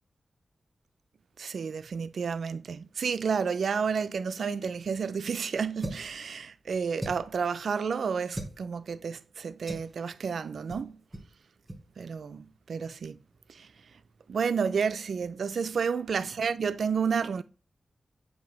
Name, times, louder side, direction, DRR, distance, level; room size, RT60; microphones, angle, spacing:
voice 1, 1.4-11.0 12.0-13.2 13.5-13.7 14.3-17.4, right 6 dB, 75° right, 0.5 m, -31 dB
sound 1, 5.8-6.2 7.0-7.4 8.3-8.6 9.7-9.9 10.7-10.9 11.1-11.3 11.6-11.8, right 1 dB, 25° right, 1.3 m, -38 dB
7.9 x 2.8 x 5.3 m
wide cardioid pair, 90°, 0 cm